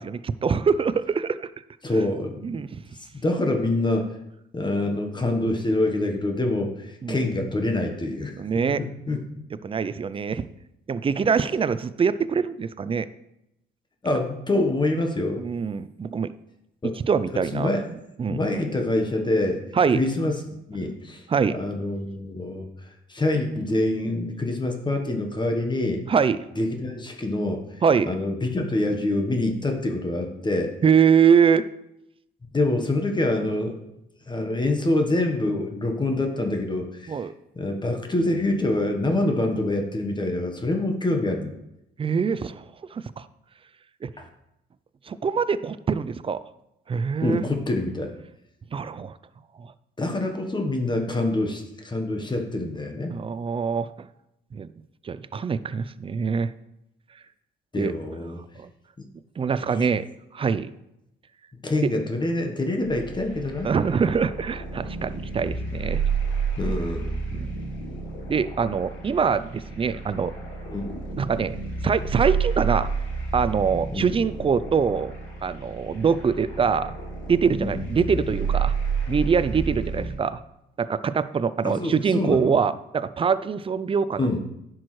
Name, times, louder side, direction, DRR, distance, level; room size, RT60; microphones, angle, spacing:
voice 1, 0.0-1.5 2.4-2.8 7.0-7.2 8.4-8.8 9.6-10.5 10.9-13.1 15.4-16.3 17.1-17.7 18.2-18.4 19.7-20.0 21.3-21.6 26.1-26.4 27.8-28.1 30.8-31.6 37.1-37.3 42.0-42.6 42.9-43.3 44.0-44.1 45.1-46.4 46.9-47.4 48.7-49.2 49.6-49.7 53.1-54.1 54.5-54.7 55.0-56.5 57.8-57.9 58.6-58.7 59.4-60.1 60.3-60.7 61.8-61.9 63.6-66.0 67.3-67.5 68.3-70.4 71.2-71.6 71.8-72.9 73.3-75.1 75.4-76.9 77.3-78.7 79.1-80.4 80.8-84.4, right 6 dB, 30° right, 15 dB, 0.4 m, -24 dB
voice 2, 1.8-2.5 3.1-4.1 4.5-8.3 8.8-9.2 14.0-15.4 16.8-17.0 17.5-17.8 18.3-19.6 19.9-21.2 21.5-22.7 23.1-26.0 26.6-27.6 28.0-30.7 32.5-33.8 34.3-37.2 37.5-41.5 44.2-44.3 47.2-48.1 50.0-53.2 57.7-58.4 59.6-59.9 61.6-63.7 66.6-67.1 70.7-70.9 73.9-74.1 77.6-77.8 81.6-82.5 84.2-84.4, left 2 dB, 20° left, 4 dB, 1.2 m, -26 dB
sound 1, 62.8-80.1, right 5 dB, 75° left, 3.2 m, -30 dB
10.0 x 6.2 x 3.2 m, 0.85 s
cardioid pair, 90°, 20 cm